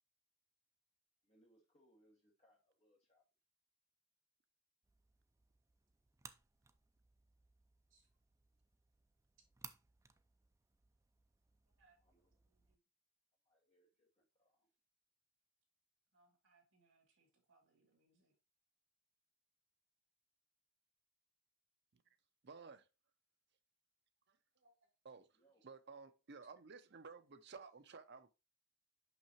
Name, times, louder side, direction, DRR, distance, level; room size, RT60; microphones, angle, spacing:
voice 1, 1.2-3.2 12.1-12.3 13.4-14.7 25.3-25.6, equal, 30° left, 1.8 m, -74 dB
sound 1, 4.8-12.8, right 5 dB, 15° right, 0.3 m, -62 dB
voice 2, 11.7-12.8 16.1-18.4 24.5-25.1 26.4-26.5, right 3 dB, 70° right, 2.6 m, -75 dB
voice 3, 22.4-22.9 24.3-24.4 25.0-25.3 25.6-28.3, right 4 dB, 50° right, 0.6 m, -55 dB
5.9 x 5.7 x 2.9 m
head